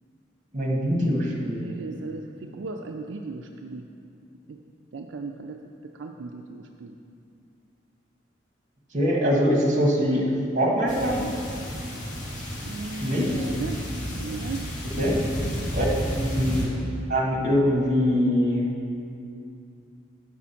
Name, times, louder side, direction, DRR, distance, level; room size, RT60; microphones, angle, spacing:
voice 1, 0.5-1.7 8.9-11.3 13.0-13.3 15.0-15.1 15.7-16.7 17.1-18.7, equal, 40° right, -2 dB, 1.5 m, -23 dB
voice 2, 1.6-3.9 4.5-4.6 4.9-7.0 12.7-13.8 14.2-14.7, right 3 dB, 75° right, 3 dB, 0.4 m, -36 dB
sound 1, 10.9-16.6, equal, 40° left, 2.0 m, -31 dB
8.3 x 6.0 x 5.7 m, 2.5 s
head